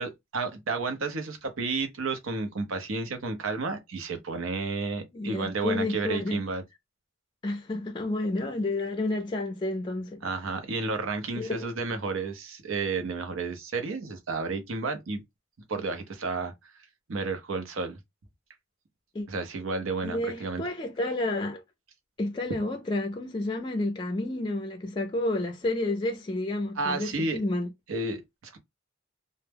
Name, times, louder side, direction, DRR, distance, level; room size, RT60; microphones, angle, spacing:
voice 1, 0.0-6.6 10.2-15.2 15.7-16.5 17.1-18.0 19.3-20.6 26.8-27.4 27.9-28.6, right 3 dB, 90° right, 0.7 m, -31 dB
voice 2, 5.1-6.4 7.4-10.2 11.4-11.7 19.1-19.3 20.0-21.6 22.2-27.7, left 2 dB, 25° left, 0.3 m, -30 dB
2.1 x 2.0 x 3.3 m
head